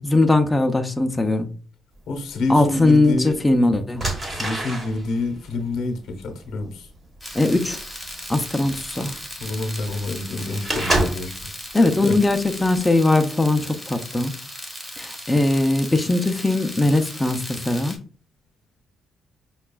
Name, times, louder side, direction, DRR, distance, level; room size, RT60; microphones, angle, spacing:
voice 1, 0.0-1.5 2.5-4.0 7.3-7.8 8.3-9.1 11.7-14.3 15.0-18.0, left 2 dB, 10° left, 0.4 m, -20 dB
voice 2, 2.1-3.5 4.3-6.9 9.4-11.5 12.0-12.1, left 2 dB, 80° left, 0.8 m, -27 dB
sound 1, 2.5-2.6 3.3-3.5 3.9-11.4 11.9-12.3 12.7-12.9, right 2 dB, 30° right, 1.1 m, -28 dB
sound 2, 7.2-18.0, equal, 5° right, 1.1 m, -37 dB
5.6 x 2.3 x 2.2 m
cardioid pair, 90°, 0 cm